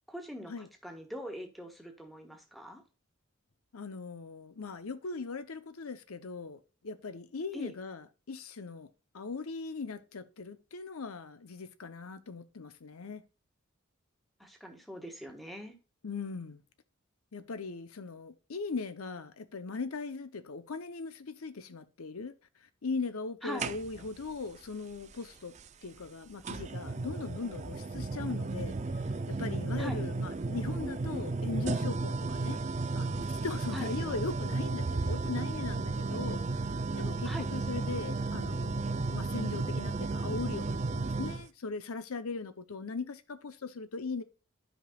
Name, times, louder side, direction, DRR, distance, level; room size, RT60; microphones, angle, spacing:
voice 1, 0.1-2.8 7.5-7.7 14.4-15.7 23.4-23.7 29.8-30.0 33.7-33.9 37.2-37.5, equal, ahead, 1.4 m, -42 dB
voice 2, 3.7-8.9 9.1-13.2 16.0-16.6 17.3-22.3 22.8-25.5 25.8-28.8 29.0-32.6 32.9-44.2, left 4 dB, 90° left, 0.7 m, -39 dB
sound 1, 23.6-24.2 25.6-25.7 26.4-41.5, right 3 dB, 35° right, 0.5 m, -34 dB
13.0 x 5.1 x 2.3 m
head